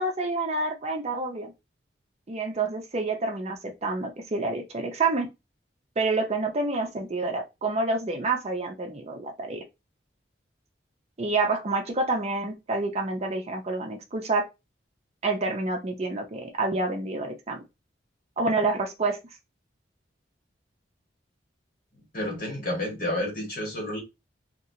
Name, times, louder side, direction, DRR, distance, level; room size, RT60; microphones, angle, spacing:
voice 1, 0.0-1.5 2.3-5.3 6.0-9.6 11.2-14.5 15.2-17.6 18.4-19.2, right 3 dB, 35° right, 0.5 m, -28 dB
voice 2, 22.1-24.0, left 1 dB, 50° left, 1.4 m, -30 dB
2.9 x 2.9 x 2.7 m
head